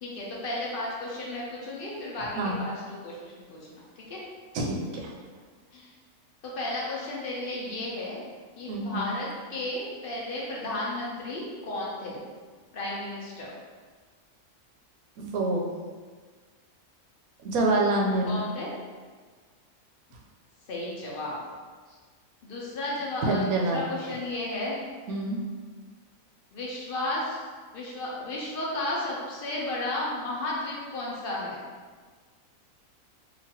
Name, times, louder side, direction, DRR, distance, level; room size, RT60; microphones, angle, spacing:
voice 1, 0.0-4.2 5.7-5.9 6.4-8.2 8.6-12.2 12.7-13.5 18.2-18.7 20.7-21.4 21.9-22.0 22.4-24.8 26.5-27.4 27.7-31.6, left 2 dB, 55° left, -5 dB, 0.6 m, -33 dB
voice 2, 8.7-9.1 15.2-15.7 17.4-18.4 23.2-23.8 25.1-25.4, right 2 dB, 80° right, -1 dB, 1.0 m, -26 dB
2.9 x 2.5 x 2.8 m, 1.5 s
omnidirectional pair, 1.5 m